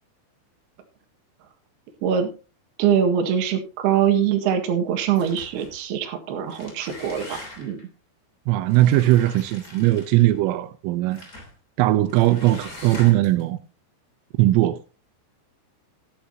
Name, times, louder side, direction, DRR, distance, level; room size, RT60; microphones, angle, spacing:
voice 1, 2.8-7.8, right 8 dB, 65° right, 3.3 m, -23 dB
sound 1, 5.1-5.8 6.4-7.8 8.7-10.4 11.1-11.5 12.1-13.4, left 2 dB, 25° left, 2.3 m, -42 dB
voice 2, 8.5-11.2 11.8-13.6 14.4-14.8, right 15 dB, 90° right, 3.4 m, -19 dB
13.0 x 11.5 x 2.8 m
omnidirectional pair, 5.7 m